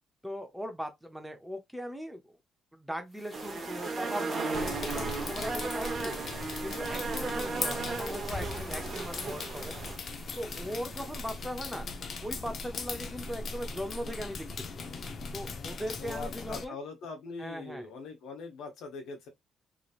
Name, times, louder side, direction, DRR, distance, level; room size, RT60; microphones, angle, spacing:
voice 1, 0.2-2.4 2.7-6.2 6.6-9.7 10.3-11.9 12.2-14.5 14.7-14.8 15.3-16.8 17.4-17.9, equal, 5° right, 0.6 m, -39 dB
sound 1, 3.1-12.1, left 1 dB, 20° left, 1.1 m, -52 dB
sound 2, 3.3-10.0, right 3 dB, 35° right, 0.8 m, -35 dB
sound 3, 4.5-16.7, left 4 dB, 45° left, 0.5 m, -39 dB
voice 2, 16.0-19.3, left 4 dB, 80° left, 1.1 m, -42 dB
3.1 x 2.8 x 2.4 m
cardioid pair, 140°, 0 cm